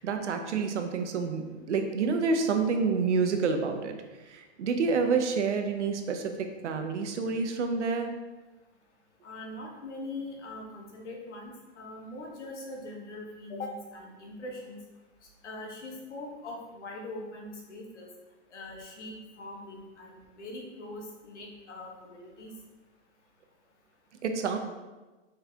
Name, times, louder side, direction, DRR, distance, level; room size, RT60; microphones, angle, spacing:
voice 1, 0.0-4.0 4.3-8.1 24.2-24.6, right 5 dB, 85° right, 6 dB, 0.8 m, -28 dB
voice 2, 9.2-14.8 15.4-18.1 18.5-22.5, left 2 dB, 85° left, 0 dB, 1.3 m, -42 dB
4.2 x 4.1 x 2.8 m, 1.2 s
hypercardioid pair, 170°, 34 cm